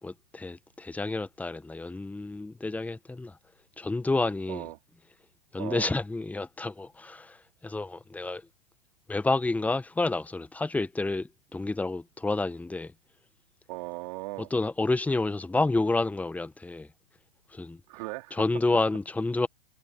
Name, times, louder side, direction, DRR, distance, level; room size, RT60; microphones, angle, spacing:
voice 1, 0.0-3.4 3.8-4.7 5.5-8.4 9.1-12.9 14.4-16.9 17.5-17.8 18.3-19.5, left 2 dB, 5° left, 1.6 m, -29 dB
voice 2, 5.6-5.9 13.7-14.5 17.9-18.4, right 23 dB, 45° right, 4.7 m, -37 dB
figure-of-eight pair, 105°, 29 cm